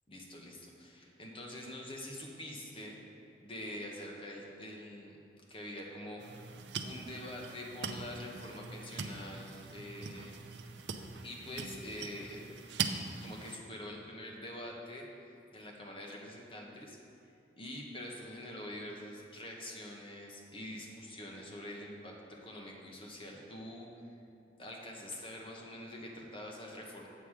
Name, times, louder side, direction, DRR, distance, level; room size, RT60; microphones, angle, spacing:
voice 1, 0.1-3.0 3.4-5.2 5.5-10.3 11.2-12.5 13.2-15.0 15.5-17.0 17.6-23.9 24.6-27.1, left 1 dB, 30° left, -1 dB, 1.1 m, -45 dB
sound 1, 6.2-13.6, right 5 dB, 85° right, 0.5 m, -42 dB
8.1 x 7.4 x 4.8 m, 2.6 s
head